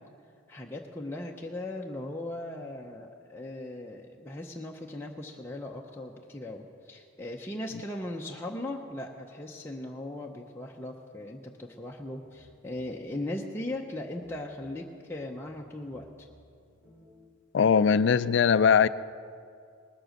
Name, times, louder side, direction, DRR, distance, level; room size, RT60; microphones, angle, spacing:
voice 1, 0.5-16.3, left 1 dB, 10° left, -1 dB, 0.6 m, -38 dB
sound 1, 12.0-17.1, left 1 dB, 5° right, 4.2 m, -59 dB
voice 2, 17.5-18.9, left 6 dB, 60° left, 16 dB, 0.3 m, -21 dB
19.5 x 7.6 x 6.5 m, 2.4 s
head